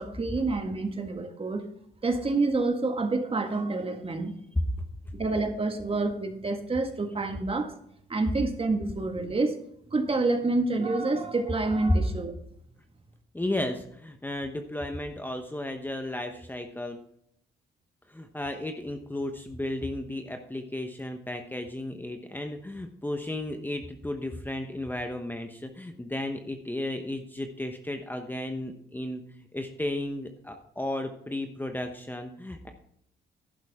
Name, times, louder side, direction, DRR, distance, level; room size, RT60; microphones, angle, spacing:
voice 1, 0.0-1.6 2.0-4.3 5.1-7.7 8.1-9.6 9.9-12.3, right 3 dB, 30° right, 6 dB, 1.7 m, -28 dB
voice 2, 13.3-17.0 18.1-29.2 29.5-32.7, left 1 dB, 10° left, 5 dB, 1.0 m, -34 dB
11.5 x 11.0 x 3.6 m, 0.70 s
cardioid pair, 90°, 20 cm